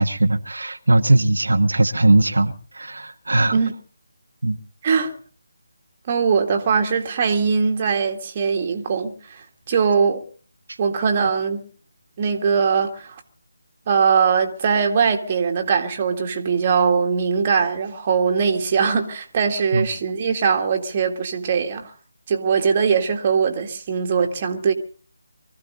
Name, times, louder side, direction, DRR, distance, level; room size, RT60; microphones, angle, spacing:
voice 1, 0.0-3.6 4.4-4.6 19.7-19.9, right 2 dB, 75° right, 1.3 m, -19 dB
voice 2, 6.1-10.2 10.8-11.6 12.2-13.2 13.9-21.9 22.3-24.7, right 6 dB, 30° right, 1.9 m, -21 dB
24.5 x 14.5 x 4.1 m
figure-of-eight pair, 155°, 0 cm